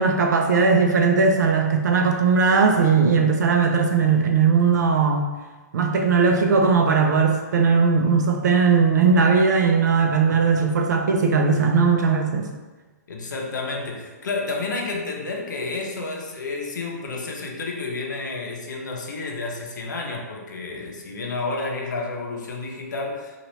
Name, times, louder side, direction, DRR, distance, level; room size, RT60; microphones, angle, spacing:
voice 1, 0.0-5.3 5.7-12.5, right 5 dB, 75° right, 3 dB, 0.5 m, -19 dB
voice 2, 13.1-23.4, left 3 dB, 90° left, 0 dB, 0.7 m, -30 dB
2.8 x 2.5 x 3.0 m, 1.3 s
hypercardioid pair, 165°, 10 cm